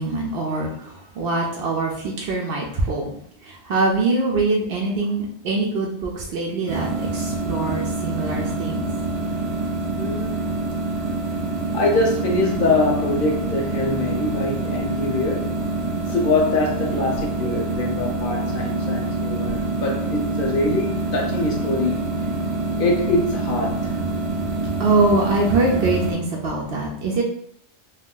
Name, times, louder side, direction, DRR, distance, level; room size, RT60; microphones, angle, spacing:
voice 1, 0.0-3.1 3.4-8.9 24.8-27.2, right 2 dB, 65° right, 0.7 m, -23 dB
sound 1, 6.7-26.1, right 2 dB, 90° right, 1.0 m, -26 dB
voice 2, 9.9-10.6 11.7-15.6 15.9-22.3 22.8-23.9, left 2 dB, 55° left, 0.8 m, -24 dB
2.5 x 2.3 x 3.6 m
omnidirectional pair, 1.2 m